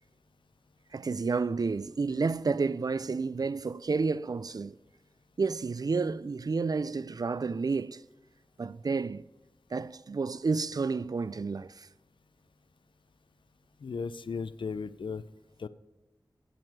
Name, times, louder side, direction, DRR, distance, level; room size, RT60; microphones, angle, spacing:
voice 1, 0.9-4.7 5.4-8.0 8.6-9.2 9.7-11.9, right 4 dB, 50° right, 0.3 m, -30 dB
voice 2, 13.8-15.2 15.6-15.7, left 5 dB, 85° left, 0.4 m, -36 dB
9.0 x 7.7 x 6.0 m
wide cardioid pair, 55°, 8 cm